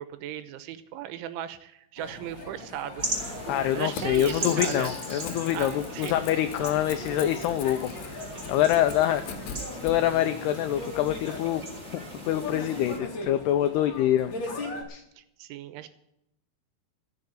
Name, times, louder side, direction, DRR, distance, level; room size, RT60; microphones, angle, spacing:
voice 1, 0.0-3.1 3.7-4.9 5.5-6.2 15.2-15.9, right 11 dB, 80° right, 12 dB, 3.3 m, -37 dB
sound 1, 2.0-14.8, left 2 dB, 35° left, 2.1 m, -40 dB
sound 2, 3.0-13.0, right 1 dB, 15° right, 3.4 m, -38 dB
voice 2, 3.5-8.2 8.5-9.2 9.7-11.6 11.9-14.3 14.9-15.0, left 12 dB, 90° left, 10 dB, 2.3 m, -25 dB
Crackle / Tearing, 3.6-10.0, left 5 dB, 60° left, 2.8 m, -42 dB
14.5 x 7.0 x 9.2 m, 0.80 s
omnidirectional pair, 5.5 m